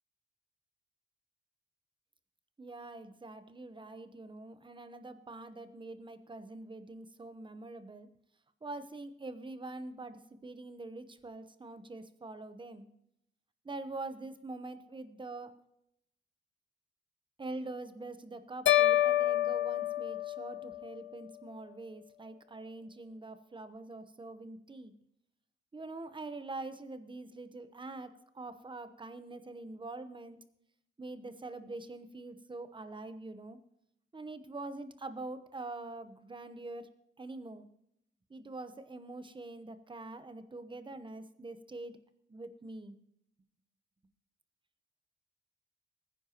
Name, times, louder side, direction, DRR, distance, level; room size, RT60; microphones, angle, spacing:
voice 1, 2.6-8.1 8.6-12.9 13.6-15.6 17.4-24.9 25.7-30.4 31.0-33.6 34.1-36.9 37.2-37.7 38.3-42.0 42.3-43.0, right 2 dB, 25° right, 10 dB, 0.9 m, -44 dB
sound 1, 18.7-20.9, left 13 dB, 75° left, 0.7 m, -28 dB
20.0 x 10.0 x 3.0 m, 0.76 s
wide cardioid pair, 125°, 20 cm